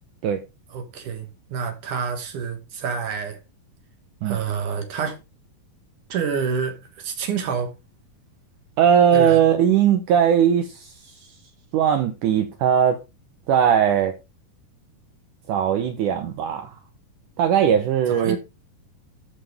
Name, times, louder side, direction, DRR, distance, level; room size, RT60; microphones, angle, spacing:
voice 1, 0.7-3.4 4.2-5.2 6.1-7.7 9.1-9.4 18.1-18.4, right 6 dB, 60° right, 2.5 m, -28 dB
voice 2, 8.8-10.9 11.7-13.0 13.5-14.1 15.5-16.7 17.4-18.4, right 8 dB, 80° right, 1.8 m, -19 dB
13.0 x 5.8 x 3.4 m
omnidirectional pair, 4.7 m